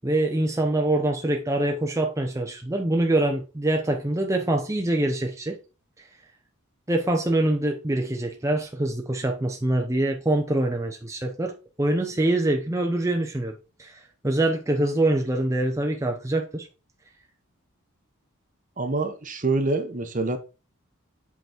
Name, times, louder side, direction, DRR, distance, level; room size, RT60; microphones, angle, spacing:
voice 1, 0.0-5.6 6.9-16.7, right 1 dB, 15° right, 0.7 m, -24 dB
voice 2, 18.8-20.4, right 3 dB, 35° right, 0.9 m, -26 dB
7.8 x 4.0 x 4.4 m
head